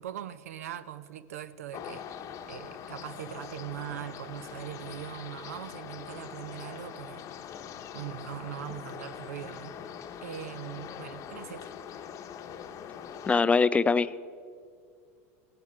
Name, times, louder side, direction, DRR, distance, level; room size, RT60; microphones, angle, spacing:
voice 1, 0.0-2.1 2.5-7.3 7.9-9.8 10.2-11.7, right 11 dB, 85° right, 0.6 m, -41 dB
sound 1, 1.7-13.4, left 8 dB, 40° left, 0.8 m, -43 dB
voice 2, 13.3-14.2, left 4 dB, 15° left, 0.3 m, -23 dB
17.0 x 10.0 x 4.9 m
hypercardioid pair, 95°, 8 cm